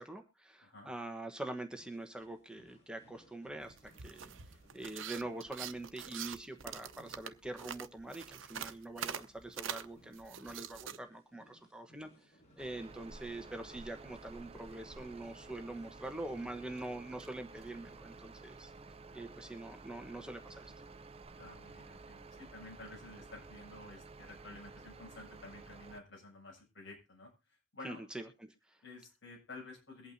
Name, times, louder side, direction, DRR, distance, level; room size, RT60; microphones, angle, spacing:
voice 1, 0.0-4.3 4.7-18.7 19.1-20.7 27.8-28.8, right 2 dB, 5° right, 6 dB, 1.1 m, -44 dB
voice 2, 0.6-0.9 21.4-28.0 28.8-30.1, left 2 dB, 65° left, -1 dB, 7.5 m, -52 dB
sound 1, 1.7-16.6, equal, 35° left, 6.7 m, -67 dB
sound 2, 3.6-11.0, right 8 dB, 80° right, 0.8 m, -45 dB
sound 3, 12.6-26.0, right 3 dB, 30° right, 0.6 m, -52 dB
23.0 x 8.8 x 2.7 m, 0.27 s
head